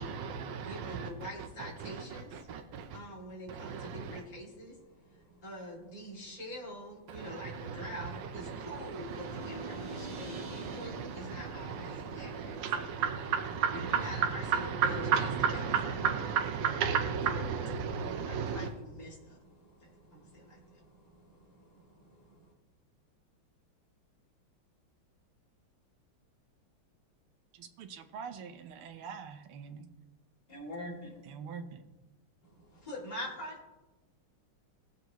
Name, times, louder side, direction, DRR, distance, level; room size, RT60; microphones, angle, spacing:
voice 1, 0.0-3.0 3.5-4.2 7.1-18.7, right 7 dB, 65° right, 4 dB, 1.3 m, -34 dB
voice 2, 0.6-2.3 2.9-12.6 14.0-14.4 18.0-22.5 30.5-31.2 32.4-33.6, equal, 20° left, -5 dB, 2.7 m, -45 dB
sound 1, 8.9-14.9, right 1 dB, 50° right, 1.7 m, -48 dB
voice 3, 27.5-29.9 31.3-31.8, right 6 dB, 85° right, 6 dB, 1.7 m, -44 dB
19.0 x 7.0 x 3.0 m, 1.1 s
omnidirectional pair, 2.3 m